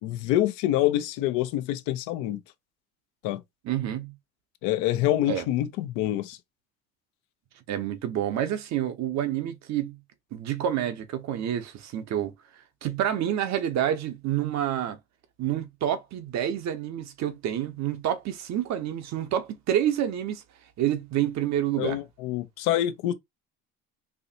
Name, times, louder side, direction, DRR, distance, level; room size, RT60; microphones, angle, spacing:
voice 1, 0.0-2.4 3.2-3.4 4.6-6.4 21.8-23.1, left 13 dB, 75° left, 0.8 m, -26 dB
voice 2, 3.6-4.1 5.3-5.4 7.7-10.0 10.3-12.3 12.8-15.0 15.4-20.4 20.8-22.0, right 10 dB, 60° right, 1.0 m, -28 dB
4.6 x 2.6 x 2.8 m
supercardioid pair, 80°, 32 cm